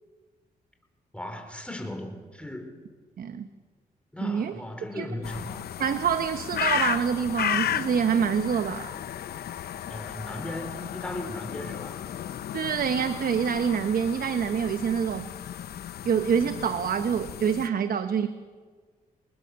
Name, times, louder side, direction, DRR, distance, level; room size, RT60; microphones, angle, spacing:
voice 1, 1.1-2.8 3.2-3.4 4.1-5.7 9.9-12.0, left 1 dB, 5° left, 5 dB, 4.5 m, -37 dB
voice 2, 3.2-3.5 4.2-4.6 4.9-5.1 5.8-9.0 12.5-15.3 16.0-18.3, right 7 dB, 65° right, 10 dB, 1.0 m, -26 dB
sound 1, 5.2-17.7, left 10 dB, 85° left, 0.8 m, -34 dB
26.0 x 20.0 x 6.9 m, 1.5 s
cardioid pair, 75°, 16 cm